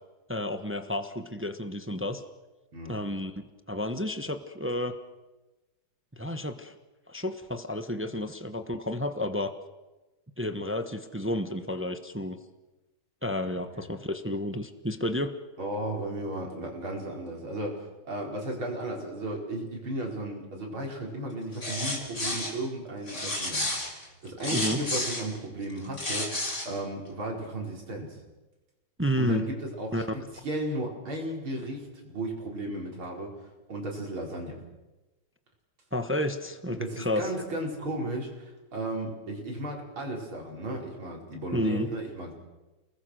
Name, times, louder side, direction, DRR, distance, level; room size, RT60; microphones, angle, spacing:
voice 1, 0.3-2.2 2.9-3.3 3.7-4.9 6.1-6.8 7.1-9.5 10.4-12.4 13.2-15.3 22.2-22.3 24.5-24.8 29.0-29.5 29.9-30.0 35.9-37.3 41.5-41.9, left 1 dB, 10° right, 9 dB, 0.7 m, -31 dB
voice 2, 13.4-13.9 15.6-28.2 29.2-30.1 30.4-33.3 33.7-34.6 36.7-42.3, right 1 dB, 80° right, 0 dB, 5.7 m, -35 dB
sound 1, 21.5-22.5 23.1-25.3 25.8-26.7, left 1 dB, 35° left, 5.0 m, -31 dB
29.0 x 20.5 x 6.5 m, 1.1 s
omnidirectional pair, 2.2 m